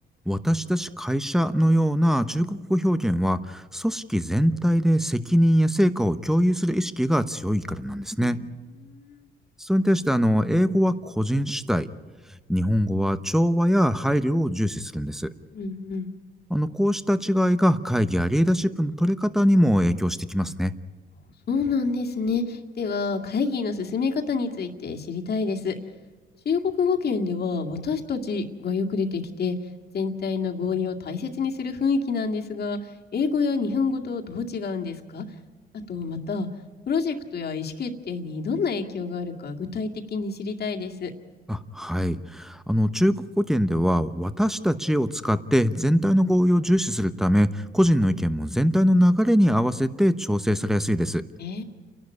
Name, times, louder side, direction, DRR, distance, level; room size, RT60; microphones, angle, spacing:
voice 1, 0.3-8.4 9.6-11.9 12.5-15.3 16.5-20.7 41.5-51.2, equal, ahead, 12 dB, 1.0 m, -22 dB
voice 2, 8.2-9.2 15.5-16.2 21.5-25.7 26.5-29.6 29.9-32.8 33.1-35.2 35.9-36.5 36.9-41.1 51.4-51.6, left 5 dB, 55° left, 1 dB, 2.3 m, -28 dB
29.0 x 12.0 x 9.8 m, 1.4 s
cardioid pair, 90°, 20 cm